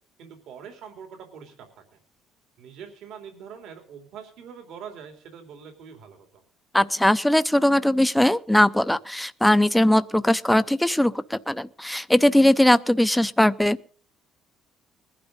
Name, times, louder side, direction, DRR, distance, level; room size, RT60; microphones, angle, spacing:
voice 1, 0.2-2.0 2.6-6.4, right 7 dB, 70° right, 3.4 m, -43 dB
voice 2, 6.7-13.9, left 1 dB, 5° left, 0.6 m, -20 dB
21.0 x 11.5 x 4.0 m
cardioid pair, 140°, 0 cm